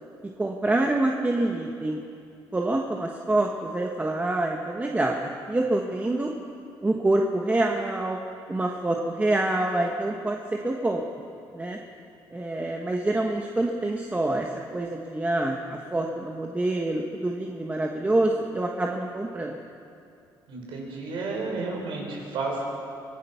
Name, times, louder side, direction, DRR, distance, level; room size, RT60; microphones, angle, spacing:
voice 1, 0.4-2.0 2.5-6.3 6.8-8.2 8.5-10.4 10.6-11.0 11.5-11.8 12.3-19.6, right 2 dB, 20° right, 1 dB, 1.5 m, -26 dB
voice 2, 20.5-22.6, right 3 dB, 75° right, -1 dB, 6.0 m, -32 dB
24.5 x 18.0 x 5.9 m, 2.5 s
cardioid pair, 100°, 9 cm